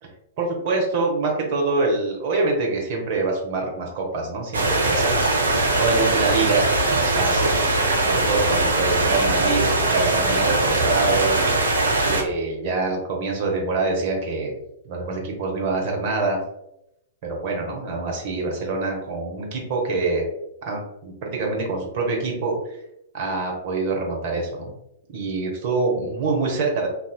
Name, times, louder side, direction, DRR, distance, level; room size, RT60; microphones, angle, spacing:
voice 1, 0.4-5.2 5.8-7.6 8.0-11.4 12.0-14.6 14.8-16.4 17.2-20.2 20.6-22.8 23.1-24.7 25.1-26.9, right 3 dB, 45° right, 0 dB, 0.8 m, -25 dB
sound 1, 4.5-12.2, right 2 dB, 80° right, 0.5 m, -21 dB
2.6 x 2.1 x 2.3 m, 0.83 s
figure-of-eight pair, 105°, 0 cm